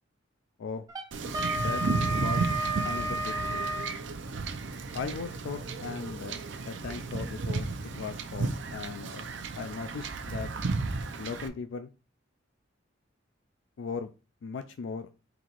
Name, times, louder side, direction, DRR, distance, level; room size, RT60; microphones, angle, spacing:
Wind instrument woodwind instrument, 0.9-4.0, right 1 dB, 20° right, 0.6 m, -32 dB
Wind / Ocean / Boat Water vehicle, 1.1-11.5, right 4 dB, 75° right, 0.6 m, -33 dB
voice 1, 1.5-1.8 2.2-2.5 2.8-3.7 4.9-6.4 6.7-9.2 9.6-10.5 11.2-11.9 13.8-14.1 14.4-15.1, left 5 dB, 80° left, 8 dB, 0.4 m, -38 dB
4.0 x 2.9 x 4.5 m, 0.32 s
head